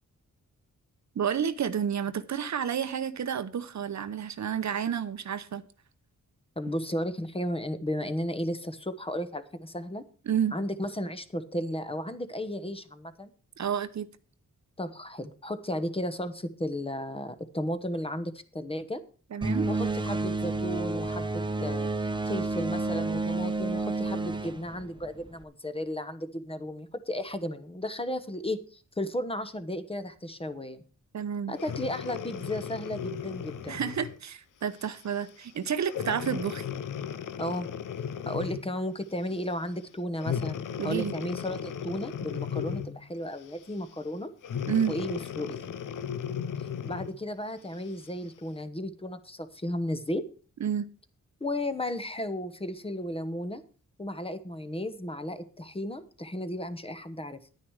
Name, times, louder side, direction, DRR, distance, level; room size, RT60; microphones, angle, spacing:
voice 1, 1.2-5.6 10.3-10.5 13.6-14.1 19.3-19.7 31.1-31.5 33.7-36.6 40.8-41.1 44.7-44.9 50.6-50.9, right 8 dB, 60° right, 0.8 m, -30 dB
voice 2, 6.6-10.0 10.5-13.3 14.8-19.0 19.7-30.8 31.5-33.8 37.4-37.7 38.3-44.3 44.9-45.7 46.8-50.2 51.4-53.6 54.0-57.4, left 1 dB, 20° left, 1.0 m, -34 dB
sound 1, 19.4-25.4, right 3 dB, 15° right, 0.9 m, -30 dB
Breathing, 31.6-34.2 34.8-35.0 35.9-38.8 40.2-43.0 44.4-47.2 47.8-47.9, left 8 dB, 80° left, 0.8 m, -35 dB
10.0 x 9.6 x 4.8 m
wide cardioid pair, 100°, 31 cm